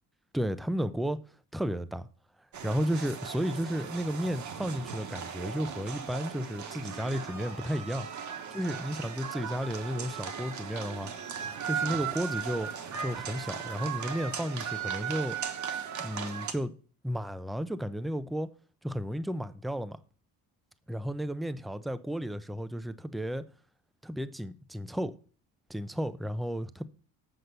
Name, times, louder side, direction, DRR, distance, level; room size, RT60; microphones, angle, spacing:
voice 1, 0.3-1.2 1.5-2.1 2.6-8.1 8.5-11.1 11.6-12.7 13.0-15.4 16.0-16.7 17.0-18.5 18.8-20.0 20.9-23.4 24.0-25.2 25.7-26.8, equal, ahead, 0.4 m, -33 dB
sound 1, 2.5-16.5, right 7 dB, 50° right, 1.2 m, -37 dB
7.9 x 5.5 x 6.6 m
cardioid pair, 125°, 37 cm